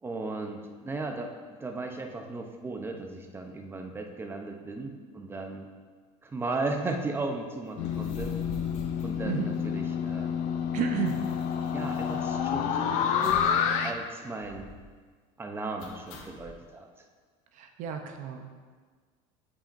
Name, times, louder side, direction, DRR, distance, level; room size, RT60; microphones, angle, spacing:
voice 1, 0.0-5.7 6.2-8.3 9.0-10.5 11.7-14.7 15.4-16.9, right 3 dB, 15° right, 4 dB, 0.6 m, -36 dB
sound 1, 7.8-10.0 10.3-10.4 10.6-12.7 13.2-13.6 13.9-14.0 14.4-14.9 15.8-16.5, left 2 dB, 80° left, 1.0 m, -45 dB
sound 2, 7.8-13.9, left 7 dB, 55° left, 0.5 m, -29 dB
voice 2, 10.7-11.2 17.5-18.5, right 7 dB, 55° right, 5 dB, 0.6 m, -32 dB
8.4 x 5.1 x 2.5 m, 1.5 s
supercardioid pair, 125°, 16 cm